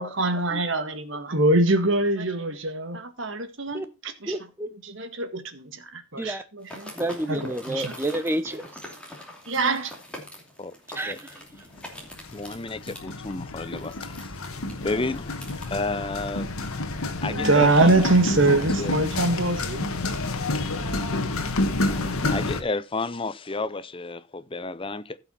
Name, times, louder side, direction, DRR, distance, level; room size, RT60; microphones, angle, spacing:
voice 1, 0.0-4.3 4.8-6.9 7.3-7.9 9.5-9.9 17.2-19.9, right 2 dB, 60° right, 1.7 m, -24 dB
voice 2, 4.3-4.7 6.2-6.4 6.9-8.8 10.9-11.4, right 1 dB, 10° right, 0.9 m, -30 dB
sound 1, 6.6-15.7, left 1 dB, 5° left, 2.7 m, -43 dB
sound 2, 11.5-11.8 12.1-22.6, left 2 dB, 85° left, 1.5 m, -29 dB
voice 3, 12.3-16.5 17.2-18.1 18.8-18.9 21.9-25.2, left 3 dB, 25° left, 0.6 m, -32 dB
15.5 x 5.9 x 4.2 m
head